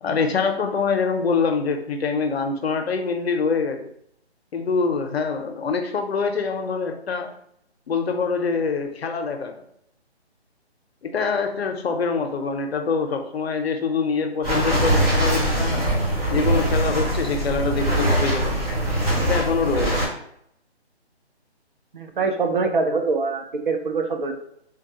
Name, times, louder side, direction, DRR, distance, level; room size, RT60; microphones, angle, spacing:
voice 1, 0.0-3.9 4.5-7.3 7.9-9.5 11.0-15.9 16.3-18.6 19.2-20.0, left 5 dB, 65° left, 5 dB, 0.6 m, -25 dB
sound 1, 14.4-20.1, right 1 dB, 35° right, 1.4 m, -22 dB
voice 2, 21.9-24.3, right 4 dB, 50° right, 5 dB, 0.5 m, -24 dB
3.7 x 2.3 x 2.7 m, 0.71 s
hypercardioid pair, 165°, 33 cm